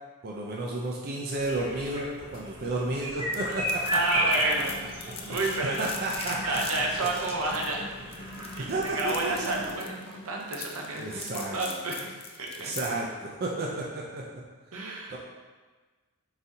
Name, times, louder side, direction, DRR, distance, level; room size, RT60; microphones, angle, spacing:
voice 1, 0.2-4.0 5.3-5.4 5.6-7.1 8.6-9.5 10.9-11.6 12.5-14.2 15.1-15.2, right 2 dB, 45° right, -2 dB, 0.5 m, -32 dB
sound 1, 1.3-9.7, right 1 dB, 20° right, 0.9 m, -34 dB
sound 2, 2.3-10.3, left 1 dB, 80° left, 0.6 m, -46 dB
sound 3, 3.3-13.0, left 5 dB, 25° left, 0.4 m, -42 dB
voice 2, 3.9-4.7 5.1-5.9 6.4-7.8 8.6-12.7 14.7-15.2, right 2 dB, 80° right, -1 dB, 0.8 m, -31 dB
4.7 x 4.0 x 2.7 m, 1.3 s
head